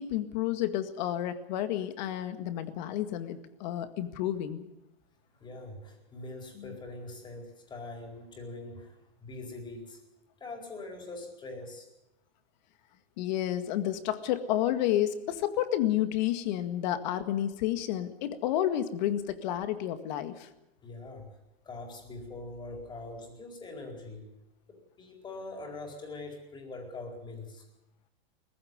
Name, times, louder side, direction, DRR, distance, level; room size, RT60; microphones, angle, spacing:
voice 1, 0.0-4.7 6.6-6.7 13.2-20.5, left 12 dB, 50° left, 10 dB, 2.0 m, -30 dB
voice 2, 5.4-10.0 10.4-11.9 20.8-21.4 21.6-24.3 24.7-27.6, left 2 dB, 15° left, 3 dB, 4.4 m, -43 dB
20.0 x 15.0 x 9.7 m, 0.91 s
hypercardioid pair, 145°, 30 cm